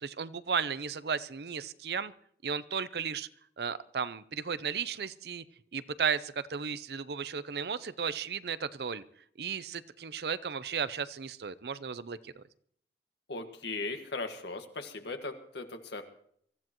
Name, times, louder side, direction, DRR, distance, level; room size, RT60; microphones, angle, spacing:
voice 1, 0.0-2.1 2.4-3.3 3.6-5.4 5.7-9.0 9.4-12.4, right 6 dB, 65° right, 15 dB, 0.6 m, -34 dB
voice 2, 13.3-16.0, left 3 dB, 75° left, 6 dB, 1.7 m, -38 dB
24.0 x 14.5 x 3.0 m, 0.65 s
head